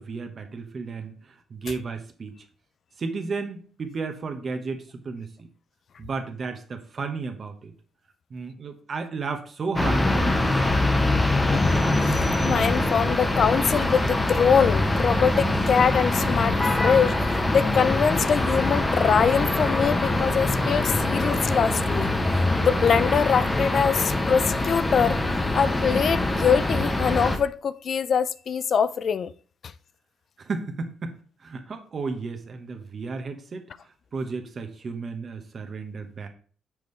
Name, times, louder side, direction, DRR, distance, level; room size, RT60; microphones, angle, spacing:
voice 1, 0.0-2.4 3.0-5.3 6.0-7.7 8.3-10.9 30.4-33.7 34.1-36.3, right 4 dB, 45° right, 1.1 m, -33 dB
sound 1, 9.8-27.4, left 2 dB, 15° left, 0.9 m, -23 dB
voice 2, 12.0-22.1 22.6-25.2 25.5-29.3, left 7 dB, 55° left, 0.3 m, -23 dB
6.2 x 5.4 x 3.3 m
cardioid pair, 90°, 0 cm